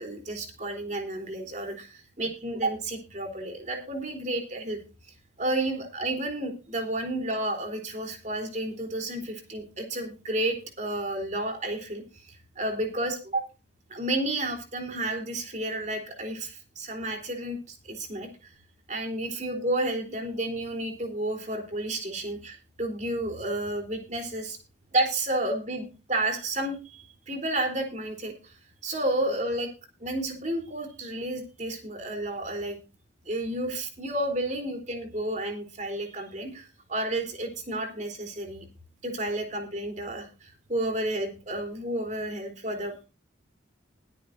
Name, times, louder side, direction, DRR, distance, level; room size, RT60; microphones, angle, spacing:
voice 1, 0.0-4.8 5.4-13.4 13.9-18.5 18.9-24.6 24.9-28.5 28.8-29.7 30.0-32.8 33.3-38.7 39.0-43.0, right 1 dB, 35° right, 4 dB, 3.5 m, -31 dB
21.5 x 8.5 x 2.6 m, 0.32 s
head